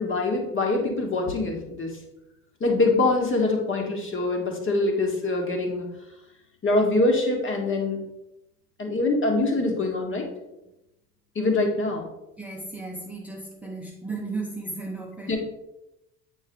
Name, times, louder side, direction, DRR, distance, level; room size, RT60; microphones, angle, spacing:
voice 1, 0.0-2.0 2.6-5.9 6.6-8.0 8.8-10.3 11.4-12.0 15.3-15.4, left 2 dB, 25° left, 2 dB, 1.9 m, -24 dB
voice 2, 12.4-15.4, right 3 dB, 5° right, -2 dB, 0.9 m, -35 dB
8.8 x 4.7 x 3.8 m, 0.91 s
figure-of-eight pair, 65°, 46 cm